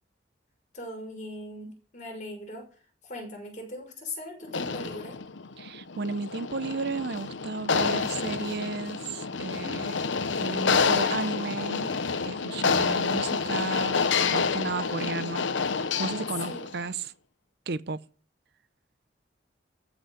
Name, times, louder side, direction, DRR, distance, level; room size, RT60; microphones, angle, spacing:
voice 1, 0.7-2.7 3.0-5.2 16.5-16.7, left 1 dB, 45° left, 6.1 m, -39 dB
sound 1, 4.5-16.8, left 5 dB, 80° left, 0.9 m, -28 dB
voice 2, 5.6-10.0 10.4-12.0 12.3-14.0 14.3-15.5 16.0-17.1 17.7-18.0, right 3 dB, 60° right, 0.7 m, -33 dB
14.5 x 6.2 x 9.9 m
head